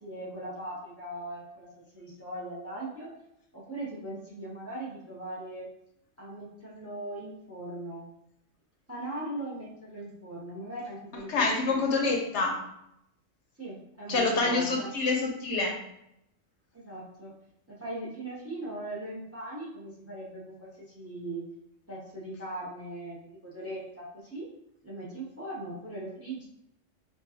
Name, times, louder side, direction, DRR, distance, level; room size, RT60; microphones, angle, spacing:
voice 1, 0.0-3.1 3.5-5.7 6.2-8.0 8.9-12.1 13.6-15.1 16.7-17.3 17.7-21.4 21.9-24.5 24.8-26.4, right 1 dB, 15° right, -4 dB, 0.5 m, -39 dB
voice 2, 11.3-12.6 14.1-15.8, left 3 dB, 65° left, 1 dB, 0.9 m, -27 dB
4.7 x 2.3 x 2.7 m, 0.79 s
omnidirectional pair, 1.4 m